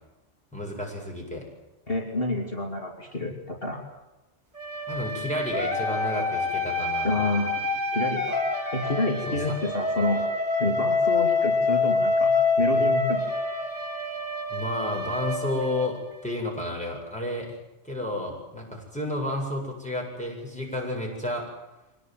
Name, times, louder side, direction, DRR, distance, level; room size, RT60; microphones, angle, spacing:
voice 1, 0.5-1.5 4.9-7.2 9.3-9.4 14.5-17.6 17.8-21.5, left 1 dB, 5° left, -1 dB, 7.9 m, -31 dB
voice 2, 1.9-3.8 7.0-8.4 8.7-10.2 10.6-12.3 12.6-13.2, left 2 dB, 50° left, 0 dB, 3.3 m, -28 dB
sound 1, 4.5-16.4, left 3 dB, 35° right, 4.9 m, -26 dB
24.5 x 19.5 x 9.4 m, 1.0 s
omnidirectional pair, 1.2 m